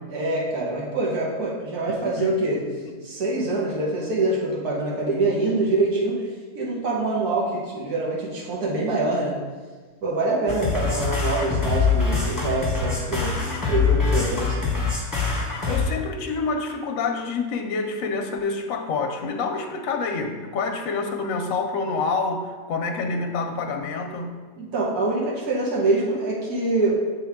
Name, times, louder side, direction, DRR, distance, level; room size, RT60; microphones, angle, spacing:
voice 1, 0.1-2.6 3.0-6.2 6.5-9.3 10.0-13.3 13.6-14.8 15.6-15.8 24.6-26.9, right 2 dB, 80° right, -4 dB, 1.7 m, -25 dB
voice 2, 1.9-2.3 2.9-3.0 15.7-24.3, left 4 dB, 70° left, 3 dB, 0.9 m, -27 dB
sound 1, 10.5-15.8, left 5 dB, 15° left, 1.0 m, -24 dB
7.7 x 3.4 x 3.5 m, 1.4 s
omnidirectional pair, 1.6 m